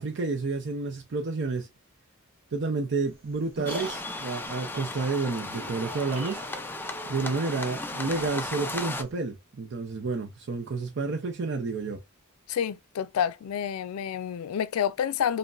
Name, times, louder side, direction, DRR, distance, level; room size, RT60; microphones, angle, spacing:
voice 1, 0.0-1.7 2.5-6.4 7.1-12.0, right 3 dB, 55° right, 0.6 m, -30 dB
sound 1, 3.1-9.1, right 1 dB, 25° right, 0.8 m, -43 dB
sound 2, 3.7-9.0, left 2 dB, 10° left, 0.3 m, -36 dB
voice 2, 12.5-15.4, left 8 dB, 90° left, 0.3 m, -29 dB
5.2 x 2.1 x 2.3 m
head